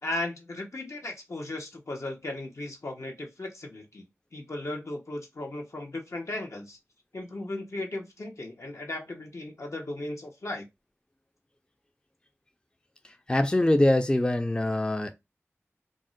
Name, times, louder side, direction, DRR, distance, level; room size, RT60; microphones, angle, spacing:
voice 1, 0.0-4.0 4.3-6.8 7.1-10.7, left 2 dB, 75° left, 0.8 m, -36 dB
voice 2, 13.3-15.1, left 1 dB, 20° left, 0.3 m, -23 dB
2.5 x 2.1 x 3.7 m
wide cardioid pair, 45°, 5 cm